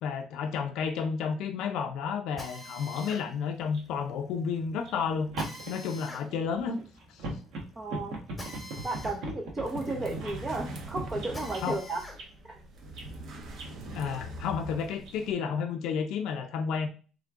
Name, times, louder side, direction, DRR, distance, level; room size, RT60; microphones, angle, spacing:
voice 1, 0.0-5.3 5.7-6.8 7.1-7.4 11.6-11.8 13.9-16.9, left 6 dB, 75° left, 4 dB, 0.5 m, -31 dB
Drill, 2.4-12.2 12.7-14.3, left 1 dB, 5° left, 1.2 m, -47 dB
sound 1, 3.0-3.1 3.6-3.8 4.8-11.6 12.1-12.3 13.0-13.1 13.6-13.8 15.0-15.1 15.7-15.8, right 2 dB, 70° right, 1.2 m, -39 dB
voice 2, 7.8-8.2 8.8-12.0 12.4-12.6, right 2 dB, 20° right, 0 dB, 0.7 m, -34 dB
sound 2, 9.6-15.3, right 1 dB, 55° right, 0.9 m, -43 dB
3.6 x 3.2 x 3.6 m, 0.36 s
cardioid pair, 155°, 0 cm